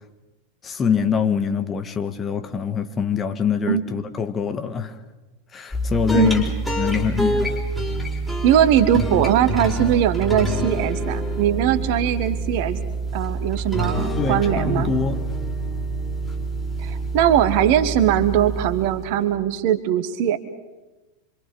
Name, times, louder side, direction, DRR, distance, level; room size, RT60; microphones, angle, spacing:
voice 1, 0.6-5.0 5.5-6.5 6.8-7.7 14.2-15.2, left 6 dB, 25° left, 1.6 m, -24 dB
sound 1, 5.7-19.3, right 2 dB, 5° left, 5.2 m, -26 dB
voice 2, 8.4-12.8 13.1-14.9 16.8-20.4, right 10 dB, 50° right, 1.5 m, -20 dB
26.0 x 25.5 x 5.5 m
figure-of-eight pair, 85°, 0 cm